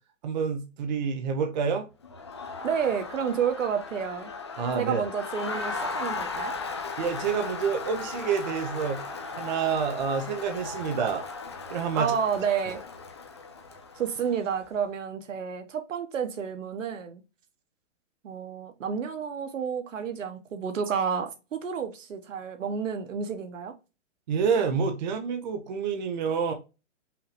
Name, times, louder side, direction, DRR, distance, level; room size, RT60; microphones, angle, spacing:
voice 1, 0.2-1.9 4.6-5.0 7.0-9.0 9.4-11.2 11.7-12.1 24.3-26.5, right 6 dB, 35° right, 0.7 m, -28 dB
Crowd, 2.0-14.6, left 4 dB, 25° left, 0.3 m, -37 dB
voice 2, 2.6-4.3 4.7-6.5 11.9-12.8 14.0-17.2 18.2-23.7, right 7 dB, 90° right, 1.2 m, -30 dB
5.6 x 2.6 x 3.3 m
hypercardioid pair, 165°, 37 cm